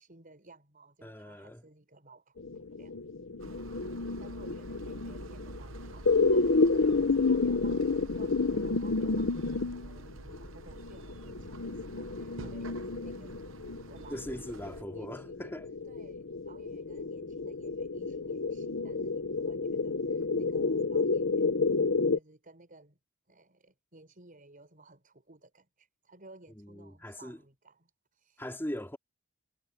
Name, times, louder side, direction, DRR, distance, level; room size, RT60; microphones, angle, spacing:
voice 1, 0.0-3.0 4.2-13.5 13.9-15.5 15.9-21.7 22.1-23.0 23.3-28.5, right 2 dB, 45° right, 5.8 m, -57 dB
voice 2, 1.0-1.6 12.4-12.6 14.1-15.7 26.6-27.4 28.4-29.0, equal, 10° left, 3.5 m, -40 dB
sound 1, 2.4-22.2, left 3 dB, 70° left, 1.0 m, -30 dB
sound 2, 3.4-14.8, right 3 dB, 80° right, 1.0 m, -48 dB
head